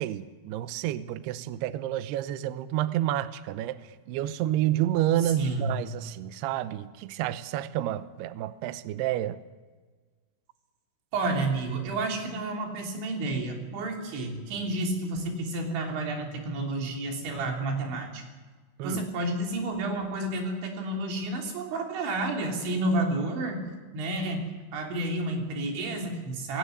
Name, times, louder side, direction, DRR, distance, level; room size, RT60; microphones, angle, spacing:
voice 1, 0.0-9.4 18.8-19.0, right 13 dB, 85° right, 13 dB, 2.3 m, -29 dB
voice 2, 5.2-5.7 11.1-18.2 18.8-23.6 23.9-26.6, right 2 dB, 65° right, 1 dB, 5.5 m, -30 dB
19.5 x 17.5 x 9.5 m, 1.4 s
omnidirectional pair, 5.7 m